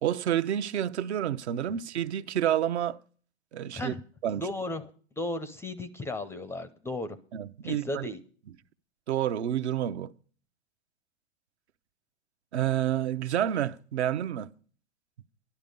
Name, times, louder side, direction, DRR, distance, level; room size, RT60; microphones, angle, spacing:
voice 1, 0.0-3.0 3.5-3.9 4.2-4.5 7.3-8.1 9.1-10.1 12.5-14.5, right 11 dB, 65° right, 0.9 m, -29 dB
voice 2, 4.4-4.9 5.2-7.2 7.6-8.2, left 1 dB, 5° left, 0.5 m, -35 dB
11.5 x 11.5 x 5.3 m
hypercardioid pair, 125°, 35 cm